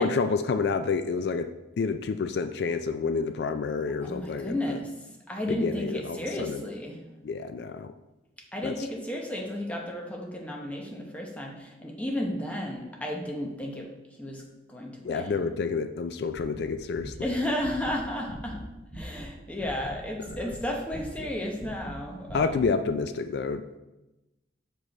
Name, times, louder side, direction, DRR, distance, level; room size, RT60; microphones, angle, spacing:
voice 1, 0.0-1.5 1.8-4.8 5.5-6.6 7.2-7.9 8.6-8.7 15.0-17.1 20.2-20.3 22.3-23.6, left 4 dB, 65° left, 9 dB, 0.3 m, -29 dB
voice 2, 4.0-7.0 8.5-13.9 14.2-15.5 17.2-18.7 18.9-22.7, left 1 dB, 10° left, 0 dB, 0.8 m, -33 dB
sound 1, 16.3-19.3 19.5-22.0 22.2-22.7, right 1 dB, 40° right, 1.9 m, -42 dB
6.2 x 5.1 x 4.2 m, 1.0 s
head